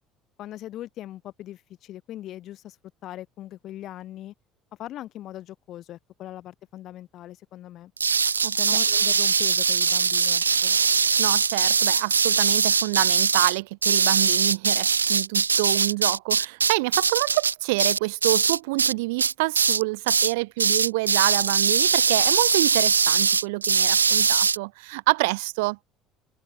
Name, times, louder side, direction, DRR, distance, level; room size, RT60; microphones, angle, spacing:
voice 1, 0.4-2.8 3.0-4.3 4.8-7.9 8.5-10.8, left 13 dB, 50° left, 4.7 m, -40 dB
sound 1, 8.0-18.9 19.2-19.8 20.1-20.3 20.6-24.6, right 5 dB, 85° right, 0.9 m, -21 dB
voice 2, 11.2-25.8, right 24 dB, 65° right, 2.1 m, -27 dB
open air
figure-of-eight pair, 60°, 0 cm